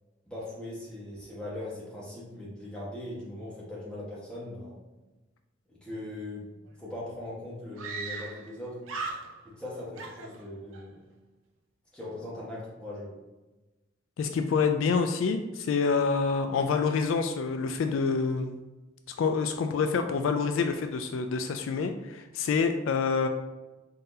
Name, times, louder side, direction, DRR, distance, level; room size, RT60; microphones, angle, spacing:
voice 1, 0.3-4.7 5.7-6.5 6.8-8.8 9.4-11.0 11.9-13.1, left 1 dB, 5° left, -7 dB, 1.2 m, -40 dB
Screaming, 6.7-6.8 7.0-7.1 7.8-8.6 8.8-9.6 9.9-10.9, right 4 dB, 75° right, 0.5 m, -38 dB
voice 2, 14.2-18.6 19.2-23.3, left 5 dB, 70° left, 7 dB, 0.3 m, -27 dB
4.1 x 3.8 x 2.7 m, 1.1 s
head